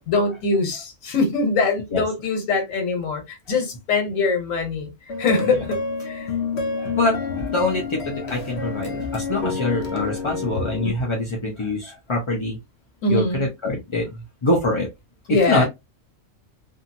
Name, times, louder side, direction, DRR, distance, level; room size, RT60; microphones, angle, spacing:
voice 1, 0.0-4.9 5.2-6.3 13.0-13.4 15.3-15.7, left 3 dB, 85° left, 1.3 m, -23 dB
Music sound, 5.1-10.9, left 4 dB, 60° left, 0.9 m, -29 dB
voice 2, 6.8-12.6 13.1-14.9 15.3-15.7, left 2 dB, 40° left, 0.4 m, -24 dB
2.7 x 2.6 x 2.6 m
omnidirectional pair, 1.3 m